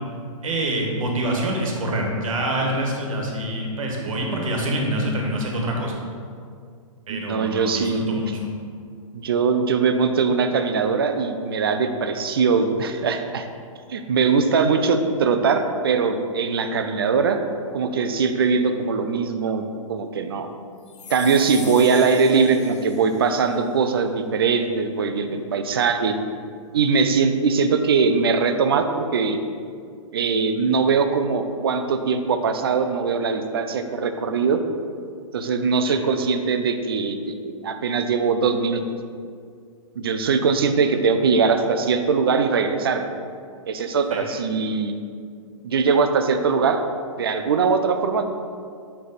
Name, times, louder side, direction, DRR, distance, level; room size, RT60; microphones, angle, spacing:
voice 1, 0.4-5.9 7.1-8.3 44.1-44.2, right 1 dB, 70° right, 0 dB, 1.4 m, -26 dB
voice 2, 7.1-8.3 9.1-13.5 13.9-17.4 17.7-19.6 19.9-20.5 21.1-26.1 26.7-29.4 30.1-34.6 35.3-38.8 40.0-43.1 43.7-44.9 45.6-46.8 47.2-48.3, right 5 dB, 45° right, 7 dB, 0.4 m, -21 dB
sound 1, 20.9-23.4, left 5 dB, 55° left, 0.8 m, -40 dB
7.7 x 3.4 x 4.0 m, 2.2 s
hypercardioid pair, 180°, 18 cm